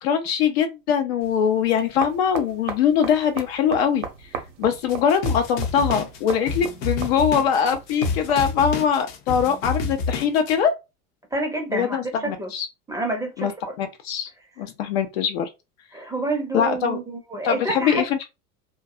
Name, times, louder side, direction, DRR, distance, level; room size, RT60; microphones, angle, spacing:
voice 1, 0.0-4.0 4.6-10.7 11.7-12.7 13.4-13.5 13.8-14.3 14.6-15.5 16.5-17.0 17.4-18.2, left 7 dB, 45° left, 0.5 m, -22 dB
sound 1, 1.2-8.6, right 7 dB, 55° right, 0.8 m, -37 dB
sound 2, 4.9-10.5, left 4 dB, 65° left, 0.8 m, -29 dB
voice 2, 11.3-12.5 12.9-13.5 15.9-18.1, right 2 dB, 10° right, 0.6 m, -28 dB
2.6 x 2.2 x 2.4 m
figure-of-eight pair, 80°, 44 cm